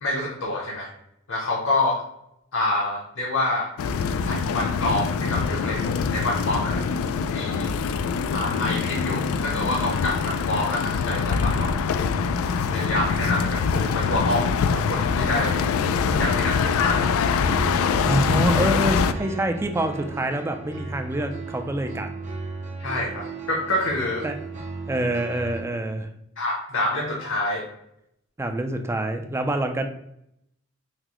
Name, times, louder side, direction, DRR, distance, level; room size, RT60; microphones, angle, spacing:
voice 1, 0.0-0.9 1.3-2.0 2.5-3.7 4.2-6.8 7.3-7.8 8.3-11.8 12.4-15.6 16.1-17.1 22.8-24.3 26.4-27.7, left 2 dB, 60° left, -2 dB, 0.7 m, -27 dB
sound 1, 3.8-19.1, left 5 dB, 85° left, 0.3 m, -24 dB
sound 2, 17.4-25.6, right 3 dB, 35° right, 0.7 m, -35 dB
voice 2, 18.0-22.1 24.2-24.4 24.9-26.1 28.4-29.9, right 1 dB, 15° right, 6 dB, 0.3 m, -26 dB
5.8 x 2.1 x 2.9 m, 0.77 s
head